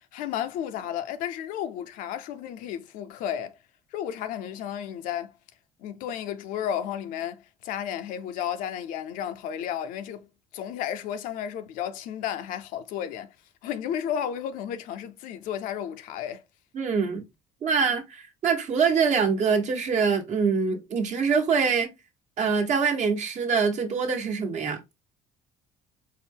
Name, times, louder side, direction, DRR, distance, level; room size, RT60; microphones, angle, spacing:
voice 1, 0.0-3.6 3.9-5.3 5.8-10.3 10.5-13.3 13.6-16.4, left 9 dB, 80° left, 0.5 m, -33 dB
voice 2, 16.7-17.2 17.6-21.9 22.4-24.8, right 5 dB, 60° right, 1.1 m, -24 dB
4.4 x 2.1 x 3.5 m
cardioid pair, 90°, 14 cm